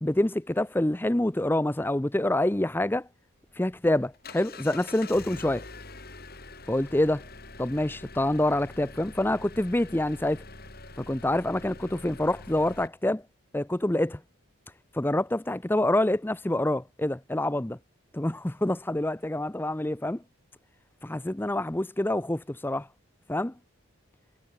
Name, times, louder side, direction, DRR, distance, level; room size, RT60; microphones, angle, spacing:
voice 1, 0.0-3.1 3.5-5.6 6.7-7.2 7.6-10.4 11.0-13.2 13.5-14.2 14.9-17.8 18.1-20.2 21.0-22.9 23.3-23.5, left 1 dB, 10° left, 0.5 m, -26 dB
Engine, 3.4-12.9, left 3 dB, 45° left, 7.4 m, -45 dB
head